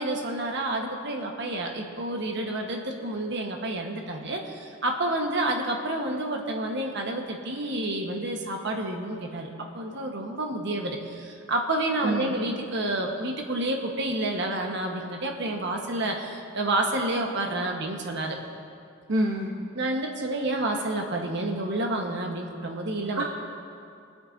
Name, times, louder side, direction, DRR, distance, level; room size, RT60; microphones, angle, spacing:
voice 1, 0.0-18.4 19.7-23.2, right 1 dB, 60° right, 1 dB, 1.2 m, -29 dB
voice 2, 12.0-12.4 19.1-19.6 23.1-23.2, right 1 dB, 75° right, 0 dB, 0.9 m, -26 dB
25.0 x 8.6 x 2.7 m, 2.4 s
head